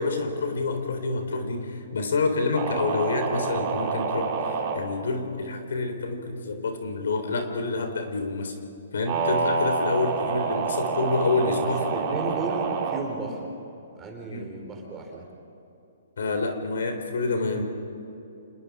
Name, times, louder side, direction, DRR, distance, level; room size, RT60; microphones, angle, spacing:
voice 1, 0.0-8.5 8.9-12.3 14.3-14.5 16.2-17.6, left 3 dB, 75° left, 6 dB, 3.7 m, -28 dB
sound 1, 2.5-4.8 9.1-13.0, right 5 dB, 35° right, 3.5 m, -27 dB
voice 2, 11.9-13.5 14.0-15.3, right 3 dB, 15° right, 1 dB, 4.3 m, -34 dB
27.5 x 20.5 x 4.9 m, 2.8 s
hypercardioid pair, 150°, 0 cm